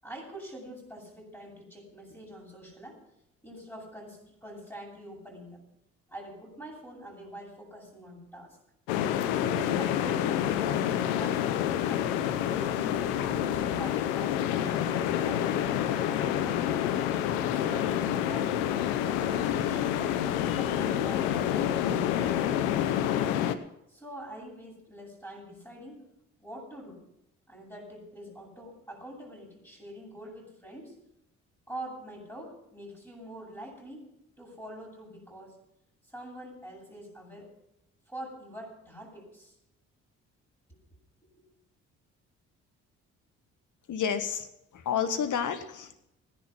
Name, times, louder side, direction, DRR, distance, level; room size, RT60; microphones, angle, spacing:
voice 1, 0.0-3.0 3.4-5.6 6.1-8.6 9.4-11.5 11.9-12.7 13.2-17.0 17.4-20.0 20.5-23.3 23.9-26.1 26.4-27.0 27.5-31.0 31.7-34.1 34.4-35.6 36.0-37.5 38.1-39.6 40.7-40.8 41.3-41.4, right 1 dB, 5° left, -3 dB, 7.8 m, -45 dB
sound 1, 8.9-23.5, left 10 dB, 80° left, 0.9 m, -28 dB
voice 2, 43.9-44.5 44.7-45.9, left 8 dB, 55° left, 10 dB, 1.7 m, -30 dB
16.5 x 10.5 x 6.1 m, 0.84 s
hypercardioid pair, 45°, 36 cm